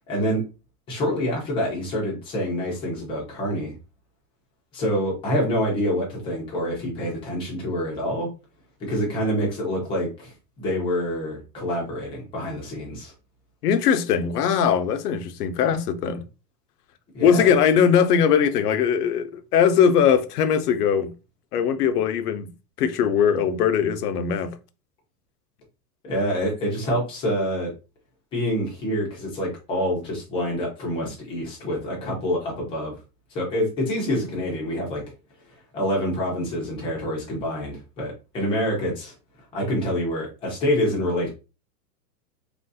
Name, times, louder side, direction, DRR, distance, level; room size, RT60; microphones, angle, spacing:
voice 1, 0.1-0.4 0.9-3.7 4.7-8.3 8.8-13.1 17.1-17.5 26.0-27.7 28.3-32.9 33.3-35.0 35.5-39.1 39.5-41.3, equal, 10° left, 0.6 m, -26 dB
voice 2, 13.6-16.2 17.2-21.1 21.5-22.5 22.8-24.6, left 7 dB, 70° left, 0.6 m, -20 dB
3.1 x 2.5 x 2.6 m
hypercardioid pair, 150°, 49 cm